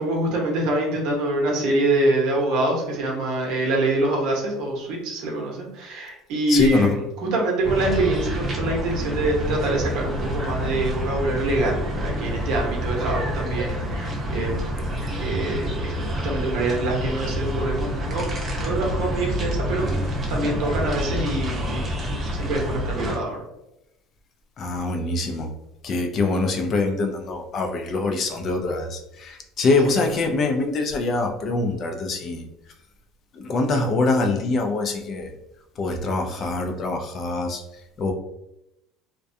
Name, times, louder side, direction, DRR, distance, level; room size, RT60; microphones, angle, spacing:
voice 1, 0.0-14.9 15.2-18.2 18.5-23.4 29.8-30.1, right 2 dB, 65° right, -1 dB, 0.8 m, -25 dB
voice 2, 6.5-7.0 24.6-25.5 25.8-32.4 33.4-35.3 35.8-37.6 38.0-38.1, left 3 dB, 40° left, 4 dB, 0.4 m, -24 dB
sound 1, 7.6-23.2, equal, 25° right, 0.7 m, -27 dB
2.4 x 2.2 x 2.6 m, 0.87 s
supercardioid pair, 120°, 0 cm